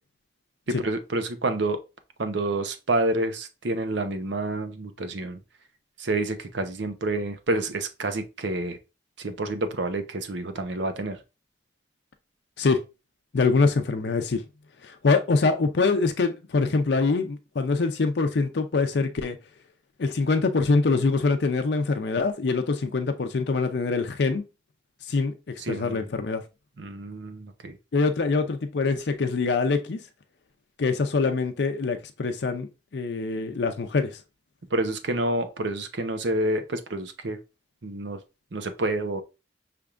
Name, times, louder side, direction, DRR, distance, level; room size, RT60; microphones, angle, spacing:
voice 1, 0.7-1.8 2.2-5.4 6.0-8.8 9.2-11.2 25.6-26.0 26.8-27.8 34.7-37.4 37.8-38.2 38.5-39.2, right 2 dB, 75° right, 0.8 m, -28 dB
voice 2, 13.3-14.4 14.8-19.4 20.0-24.4 25.0-25.3 25.7-26.4 27.9-30.0 30.8-34.2, left 4 dB, 65° left, 0.5 m, -24 dB
5.8 x 3.4 x 2.4 m
head